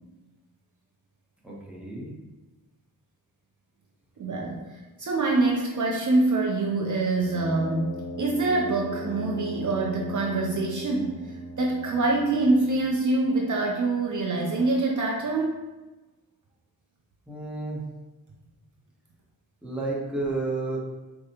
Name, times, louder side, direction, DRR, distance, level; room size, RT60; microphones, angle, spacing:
voice 1, 1.4-2.1 17.3-17.9 19.6-20.8, right 2 dB, 5° right, -5 dB, 1.0 m, -31 dB
voice 2, 4.2-15.6, right 2 dB, 55° right, -1 dB, 0.6 m, -25 dB
Brass instrument, 7.1-13.0, equal, 45° left, 0.9 m, -38 dB
4.9 x 2.2 x 2.8 m, 1.1 s
cardioid pair, 65°, 38 cm